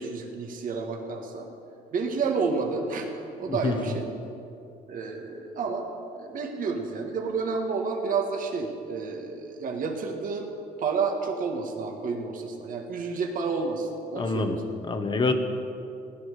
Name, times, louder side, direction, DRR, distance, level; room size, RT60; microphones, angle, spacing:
voice 1, 0.0-1.5 1.9-3.1 3.4-4.1 4.9-5.9 6.2-10.5 10.8-14.5, right 4 dB, 55° right, 2 dB, 1.8 m, -30 dB
voice 2, 3.5-4.0 14.2-14.6 14.8-15.3, left 3 dB, 30° left, 7 dB, 1.4 m, -26 dB
16.5 x 11.0 x 6.8 m, 2.7 s
cardioid pair, 110°, 17 cm